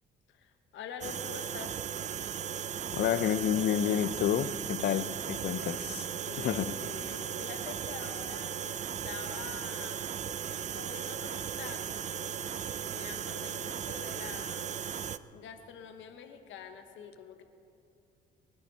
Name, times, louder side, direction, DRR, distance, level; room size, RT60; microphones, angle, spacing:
voice 1, 0.3-1.8 6.1-8.8 9.0-10.1 10.7-12.0 12.4-14.7 15.3-17.4, left 7 dB, 75° left, 7 dB, 1.2 m, -46 dB
sound 1, 1.0-15.2, right 8 dB, 40° right, 0.5 m, -37 dB
voice 2, 2.9-6.1 6.4-6.7, left 9 dB, 55° left, 15 dB, 0.6 m, -29 dB
23.5 x 11.5 x 4.2 m, 2.5 s
cardioid pair, 90°, 20 cm